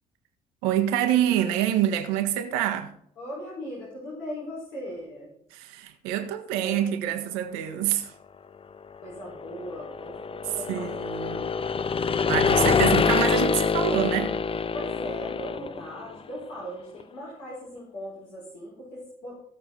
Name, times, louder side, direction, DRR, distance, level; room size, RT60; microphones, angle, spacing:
voice 1, 0.6-2.9 5.5-8.1 10.7-11.6 12.1-14.4, right 11 dB, 75° right, 1.5 m, -26 dB
voice 2, 3.2-5.3 6.6-7.1 9.0-11.5 14.7-19.4, equal, 70° left, 5.6 m, -39 dB
sound 1, 9.1-16.0, left 6 dB, 30° left, 0.6 m, -25 dB
17.0 x 6.7 x 4.3 m
hypercardioid pair, 50°, 19 cm